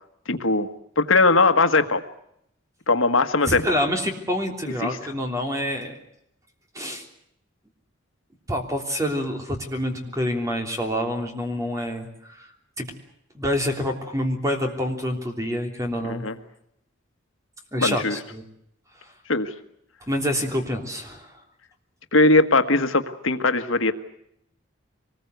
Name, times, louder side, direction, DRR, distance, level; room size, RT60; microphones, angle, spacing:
voice 1, 0.3-0.7 1.0-2.0 2.9-3.6 4.8-5.0 16.0-16.3 17.8-18.2 19.3-19.5 22.1-23.9, left 3 dB, 80° left, 9 dB, 1.6 m, -20 dB
voice 2, 3.5-6.0 6.7-7.0 8.5-12.4 12.8-12.9 13.3-16.2 17.7-18.4 20.1-21.3, equal, 15° right, 3 dB, 3.3 m, -27 dB
24.5 x 20.5 x 8.1 m, 0.76 s
head